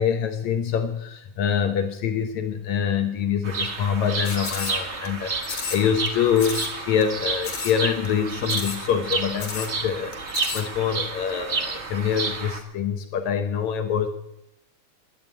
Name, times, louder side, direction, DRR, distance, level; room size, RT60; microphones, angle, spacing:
voice 1, 0.0-14.1, left 8 dB, 75° left, 6 dB, 2.2 m, -25 dB
Bird vocalization bird call bird song, 3.4-12.6, right 4 dB, 65° right, 0.6 m, -30 dB
sound 1, 4.2-5.1 5.4-6.1 6.4-6.7 7.0-7.1 7.4-7.8 8.0-8.1 8.4-8.8 9.1-9.2 9.4-9.7 10.1-10.6, left 5 dB, 55° left, 3.3 m, -32 dB
11.0 x 11.0 x 8.6 m, 0.84 s
omnidirectional pair, 3.5 m